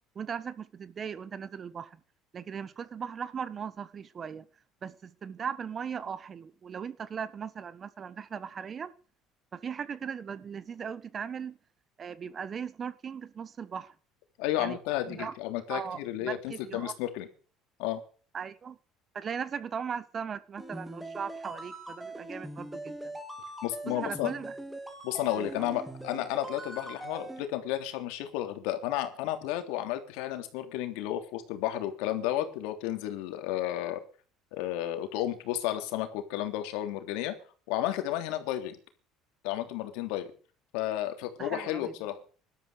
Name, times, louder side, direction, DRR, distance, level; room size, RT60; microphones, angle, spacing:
voice 1, 0.1-2.0 2.3-4.5 4.8-8.9 9.5-11.6 12.0-13.9 14.6-14.8 15.1-15.3 15.7-17.0 18.3-18.8 19.1-23.1 23.9-24.6 25.3-25.7 41.4-41.9, right 7 dB, 30° right, 1.3 m, -38 dB
voice 2, 14.4-17.3 17.8-18.0 23.6-24.3 25.0-34.0 34.5-37.3 37.7-38.8 39.4-40.3 40.7-42.2, left 13 dB, 85° left, 3.2 m, -32 dB
sound 1, 20.6-27.4, right 1 dB, 5° right, 3.5 m, -42 dB
18.5 x 12.5 x 5.0 m
cardioid pair, 130°, 0 cm